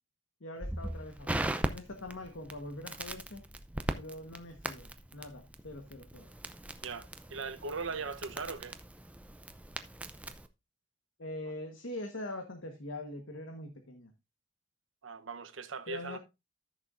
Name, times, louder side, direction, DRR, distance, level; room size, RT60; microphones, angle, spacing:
voice 1, 0.4-3.4 4.0-6.3 11.2-14.1 15.9-16.2, left 1 dB, 90° left, 1.3 m, -43 dB
Crackle, 0.6-10.5, right 1 dB, 5° right, 0.5 m, -40 dB
voice 2, 6.8-8.8 15.0-16.2, right 4 dB, 90° right, 0.9 m, -39 dB
14.0 x 6.5 x 2.6 m
head